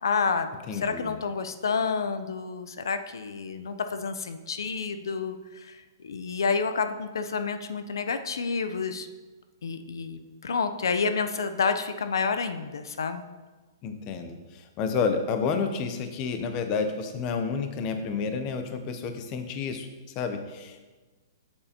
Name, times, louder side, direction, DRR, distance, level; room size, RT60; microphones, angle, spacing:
voice 1, 0.0-0.5 0.8-9.1 9.6-13.2, left 5 dB, 85° left, 9 dB, 0.5 m, -29 dB
voice 2, 0.7-1.2 13.8-19.9 20.2-20.8, left 5 dB, 25° left, 7 dB, 0.5 m, -30 dB
8.4 x 7.2 x 2.8 m, 1.3 s
hypercardioid pair, 165°, 2 cm